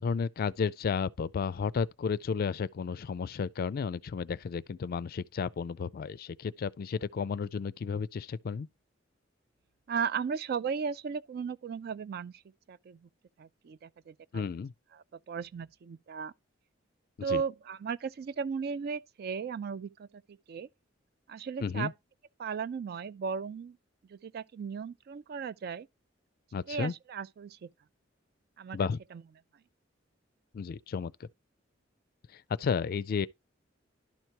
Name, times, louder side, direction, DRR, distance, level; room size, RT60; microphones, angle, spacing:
voice 1, 0.0-8.7 14.3-14.7 17.3-17.4 21.6-21.9 26.5-26.9 28.7-29.0 30.5-31.3 32.3-33.3, left 5 dB, 50° left, 0.4 m, -32 dB
voice 2, 9.9-12.4 12.7-13.1 13.4-14.4 14.9-16.3 17.2-20.7 21.3-21.9 22.4-23.8 24.1-25.9 26.7-27.7 28.6-28.8 29.1-29.2, right 6 dB, 55° right, 0.3 m, -36 dB
11.5 x 4.6 x 2.8 m
head